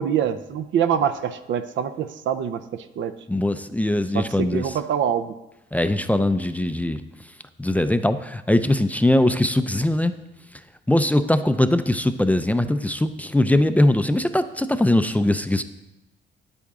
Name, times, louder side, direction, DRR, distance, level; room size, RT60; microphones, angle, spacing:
voice 1, 0.0-3.1 4.1-5.3, right 8 dB, 70° right, 11 dB, 0.6 m, -25 dB
voice 2, 3.3-4.7 5.7-7.0 7.6-10.1 10.9-15.6, left 1 dB, 5° left, 10 dB, 0.4 m, -21 dB
9.2 x 8.5 x 3.7 m, 0.98 s
cardioid pair, 90°, 20 cm